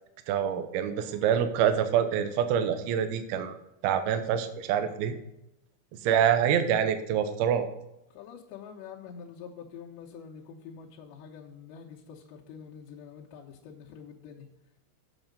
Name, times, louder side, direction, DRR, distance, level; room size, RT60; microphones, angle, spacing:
voice 1, 0.3-3.6 3.8-5.1 6.0-7.7, right 9 dB, 80° right, 8 dB, 2.3 m, -26 dB
voice 2, 8.1-14.5, left 7 dB, 80° left, -4 dB, 2.9 m, -46 dB
8.0 x 7.2 x 5.2 m, 0.87 s
omnidirectional pair, 5.4 m